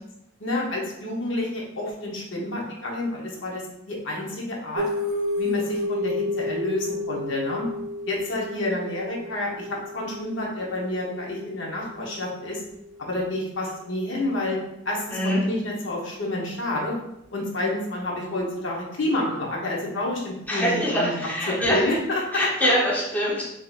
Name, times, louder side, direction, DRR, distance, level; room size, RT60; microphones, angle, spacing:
voice 1, 0.4-3.6 3.9-4.9 5.4-7.7 8.1-12.6 13.0-14.6 14.8-16.9 17.3-21.1 21.5-22.7, left 1 dB, 70° left, -2 dB, 0.8 m, -29 dB
sound 1, 4.8-13.7, left 2 dB, 65° right, 0.4 m, -32 dB
voice 2, 15.1-15.4 20.5-21.9 22.3-23.4, equal, 10° left, -5 dB, 0.7 m, -23 dB
3.6 x 2.7 x 2.3 m, 0.82 s
head